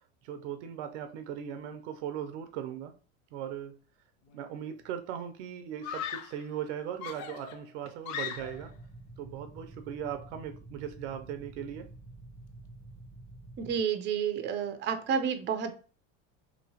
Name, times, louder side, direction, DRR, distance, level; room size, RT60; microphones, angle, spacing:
voice 1, 0.2-2.9 3.3-3.7 4.3-8.7 9.2-11.9, right 9 dB, 85° right, 0.7 m, -38 dB
Screaming, 4.3-4.7 5.8-6.5 7.0-8.7, left 9 dB, 55° left, 0.5 m, -39 dB
sound 1, 8.4-13.8, right 2 dB, 5° left, 1.0 m, -49 dB
voice 2, 13.6-15.7, right 7 dB, 30° right, 0.6 m, -30 dB
3.0 x 2.9 x 2.8 m
supercardioid pair, 105°, 34 cm